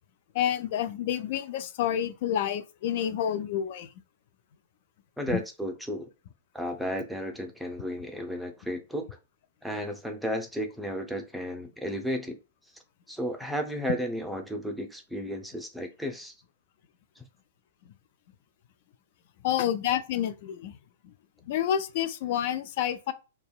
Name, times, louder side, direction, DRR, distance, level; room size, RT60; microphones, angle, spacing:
voice 1, 0.3-3.9 5.3-5.4 19.4-20.7 21.0-21.1 21.5-23.1, left 10 dB, 55° left, 0.3 m, -29 dB
voice 2, 5.2-6.1 6.5-9.1 9.6-12.4 13.1-16.3 17.2-17.3, equal, ahead, 0.5 m, -33 dB
2.6 x 2.2 x 2.3 m
hypercardioid pair, 110°, 0 cm